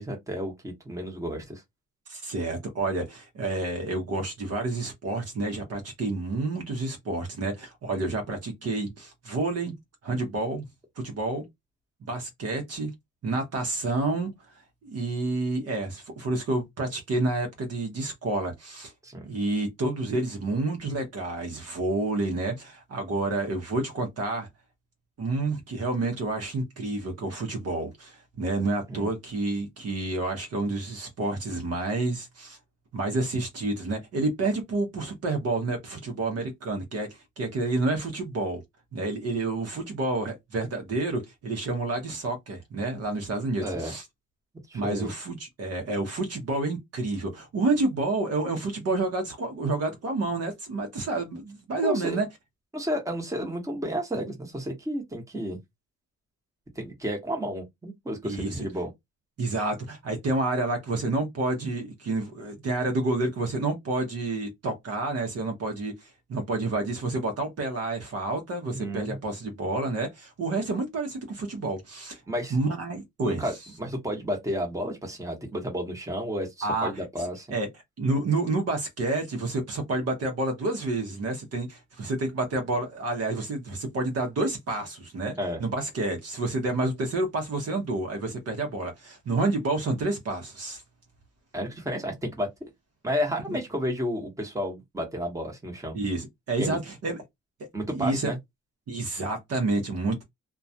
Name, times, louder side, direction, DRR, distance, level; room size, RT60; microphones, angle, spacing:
voice 1, 0.0-1.6 7.9-8.1 19.0-19.3 28.9-29.1 43.6-44.0 44.7-45.1 51.8-52.2 52.7-55.6 56.7-58.9 68.7-69.2 72.3-72.6 73.2-77.5 85.4-85.6 91.5-92.5 93.0-96.0 96.6-96.8 97.7-98.4, equal, 10° right, 1.0 m, -32 dB
voice 2, 2.1-9.7 10.0-10.7 11.0-11.4 12.0-12.9 13.2-18.9 19.2-24.5 25.2-32.6 32.9-37.1 37.4-38.6 38.9-44.0 44.7-52.3 58.2-58.7 59.4-72.2 72.5-73.4 76.6-76.9 77.5-77.7 78.0-85.3 85.6-90.8 93.5-93.6 95.9-97.2 97.9-98.3 98.9-100.2, right 2 dB, 55° right, 0.9 m, -29 dB
2.2 x 2.2 x 2.7 m
cardioid pair, 90°, 30 cm